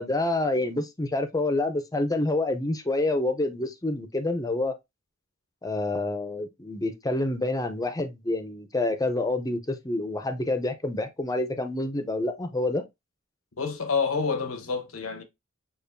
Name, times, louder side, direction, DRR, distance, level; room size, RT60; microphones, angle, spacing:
voice 1, 0.0-4.7 5.6-12.8, left 2 dB, 20° left, 0.7 m, -27 dB
voice 2, 13.6-15.2, left 5 dB, 90° left, 1.0 m, -28 dB
6.8 x 2.6 x 2.6 m
head